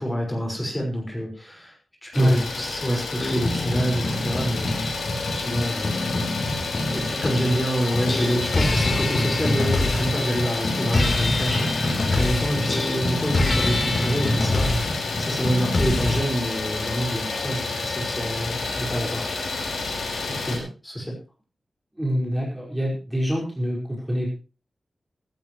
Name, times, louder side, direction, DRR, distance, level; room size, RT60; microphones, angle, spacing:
voice 1, 0.0-1.7 2.0-4.8 5.3-6.0 6.9-19.3 20.4-21.2, equal, 10° left, -1 dB, 5.6 m, -27 dB
Idling, 2.1-20.6, left 3 dB, 90° left, 5.4 m, -30 dB
sound 1, 3.2-7.6 7.9-16.2, left 2 dB, 50° left, 3.8 m, -25 dB
voice 2, 21.9-24.3, equal, 10° right, -3 dB, 5.3 m, -24 dB
17.5 x 15.5 x 3.2 m, 0.35 s
wide cardioid pair, 110°, 0 cm